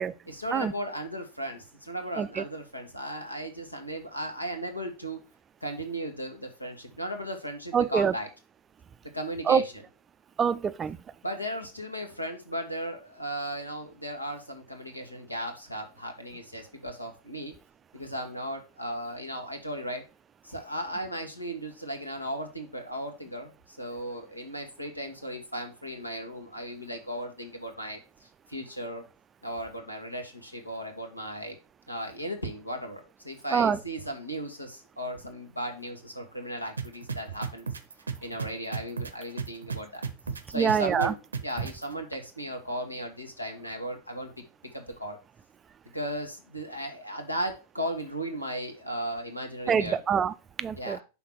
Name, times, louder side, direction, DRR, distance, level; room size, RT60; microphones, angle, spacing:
voice 1, 0.3-5.2 5.6-8.3 9.1-9.7 11.2-17.5 17.9-20.0 20.4-29.0 29.4-31.6 31.9-37.7 38.2-40.0 40.5-41.1 41.4-44.3 44.7-45.2 45.9-50.0 50.8-51.0, equal, 85° left, 1.4 m, -36 dB
voice 2, 7.7-8.1 9.5-9.6 10.4-11.0 33.5-33.8 40.5-41.1 49.7-51.0, right 7 dB, 25° right, 0.4 m, -25 dB
sound 1, 36.8-41.8, right 5 dB, 75° right, 0.6 m, -33 dB
5.7 x 3.9 x 6.1 m
figure-of-eight pair, 90°, 0 cm